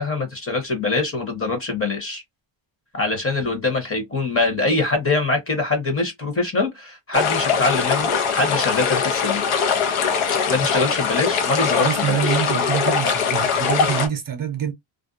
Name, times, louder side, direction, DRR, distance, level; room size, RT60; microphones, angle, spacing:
voice 1, 0.0-2.2 2.9-9.4 10.5-12.4, left 3 dB, 25° left, 1.0 m, -23 dB
sound 1, 7.1-14.1, left 6 dB, 80° left, 0.9 m, -21 dB
voice 2, 11.8-14.7, right 8 dB, 45° right, 0.7 m, -25 dB
2.5 x 2.1 x 2.6 m
cardioid pair, 135°, 50 cm